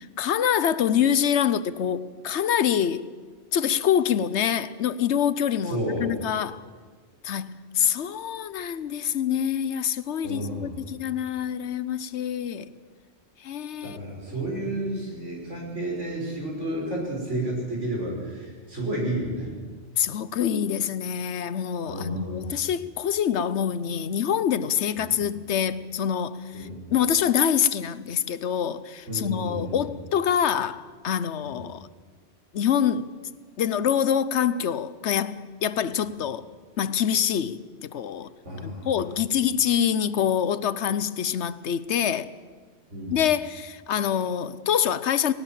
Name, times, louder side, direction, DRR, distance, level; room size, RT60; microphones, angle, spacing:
voice 1, 0.0-3.1 3.5-6.6 7.2-12.7 13.4-14.0 20.0-31.9 32.5-33.2 33.6-36.5 36.8-38.3 38.6-42.3 43.1-45.3, left 9 dB, 70° left, 1.0 m, -25 dB
voice 2, 5.6-6.1 10.2-10.8 13.8-19.5 21.9-22.6 25.0-25.1 26.5-26.7 29.1-29.8 31.4-31.6 38.4-38.9 42.9-43.1, right 1 dB, 85° right, 6.0 m, -31 dB
19.0 x 18.5 x 7.5 m
omnidirectional pair, 1.2 m